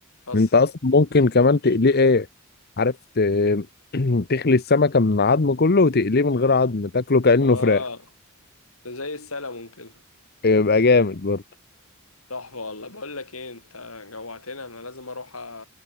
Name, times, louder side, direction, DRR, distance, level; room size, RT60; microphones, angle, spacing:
voice 1, 0.3-2.3 2.8-3.7 3.9-7.8 10.4-11.4, left 3 dB, 50° left, 0.9 m, -19 dB
voice 2, 7.4-8.0 8.8-10.0 12.3-15.6, left 3 dB, 85° left, 6.2 m, -35 dB
head